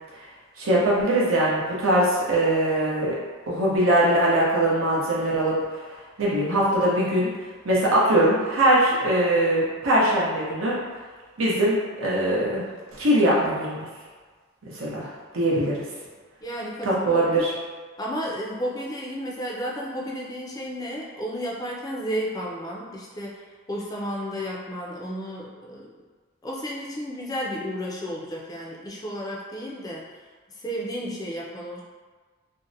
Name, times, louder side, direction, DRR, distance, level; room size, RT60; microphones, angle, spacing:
voice 1, 0.6-3.2 3.5-5.6 6.2-7.3 7.6-10.8 11.4-13.9 14.7-15.1 15.3-15.8 16.8-17.5, right 1 dB, 90° right, -6 dB, 0.7 m, -21 dB
voice 2, 16.4-17.5 18.0-25.9 26.4-30.1 30.5-31.8, equal, 20° left, -4 dB, 0.4 m, -32 dB
2.6 x 2.1 x 2.6 m, 1.5 s
head